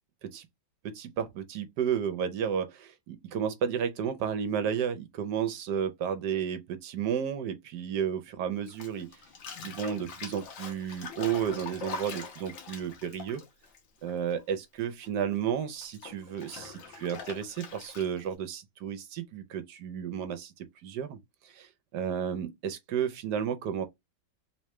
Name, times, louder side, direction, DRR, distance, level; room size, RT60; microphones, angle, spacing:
voice 1, 0.8-9.1 9.6-13.4 14.0-23.9, right 8 dB, 70° right, 1.1 m, -32 dB
Bathtub (filling or washing), 8.7-14.5 14.8-18.3, left 5 dB, 75° left, 1.7 m, -43 dB
3.6 x 3.1 x 3.1 m
omnidirectional pair, 2.1 m